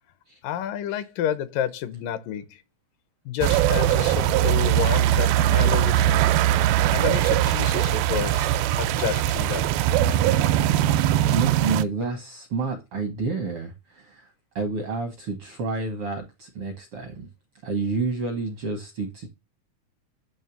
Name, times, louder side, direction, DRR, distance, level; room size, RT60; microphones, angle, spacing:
voice 1, 0.4-2.5 3.3-6.2 6.9-9.7, left 9 dB, 75° left, 2.4 m, -30 dB
sound 1, 3.4-11.8, right 12 dB, 90° right, 2.4 m, -21 dB
voice 2, 11.3-17.3 17.6-19.3, right 3 dB, 70° right, 1.3 m, -29 dB
9.4 x 3.3 x 5.8 m
omnidirectional pair, 4.1 m